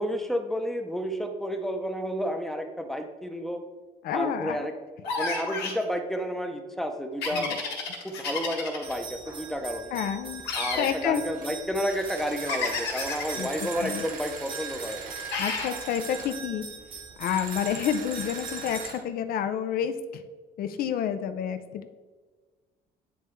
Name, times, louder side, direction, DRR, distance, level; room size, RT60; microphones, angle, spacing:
voice 1, 0.0-3.6 4.1-4.7 5.2-7.6 8.0-9.9 10.5-15.1, equal, ahead, 5 dB, 0.6 m, -31 dB
voice 2, 4.0-4.7 7.3-7.6 9.9-10.4 10.8-11.2 13.4-13.5 13.8-14.0 15.4-16.7 17.2-20.2 20.6-21.9, left 9 dB, 60° left, 10 dB, 0.4 m, -29 dB
sound 1, 5.0-5.8 7.2-8.9 10.4-10.9 12.5-13.3 15.3-15.7, left 4 dB, 80° left, 1.7 m, -31 dB
taipei temple bell, 8.8-18.9, right 4 dB, 30° right, 0.8 m, -41 dB
Slicer Trimmer, 11.3-11.6 11.8-16.4 17.2-19.0, right 5 dB, 55° right, 0.9 m, -41 dB
9.4 x 3.3 x 3.1 m, 1.4 s
cardioid pair, 110°, 17 cm